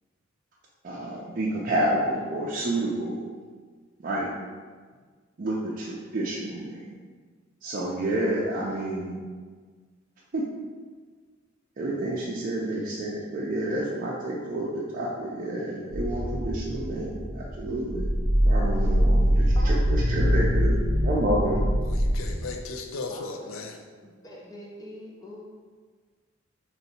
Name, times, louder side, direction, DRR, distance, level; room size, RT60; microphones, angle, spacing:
voice 1, 0.8-3.2 4.0-4.3 5.4-6.9 7.6-9.2 10.3-10.4 11.8-18.1 18.4-21.7, right 1 dB, 40° right, -5 dB, 0.4 m, -29 dB
sound 1, 15.9-22.3, equal, 60° left, 1.3 m, -23 dB
voice 2, 19.5-19.9 23.1-23.5 24.0-25.4, equal, 20° left, -2 dB, 0.4 m, -43 dB
voice 3, 21.9-23.8, left 3 dB, 80° left, 3 dB, 0.4 m, -36 dB
3.0 x 2.7 x 4.1 m, 1.5 s
head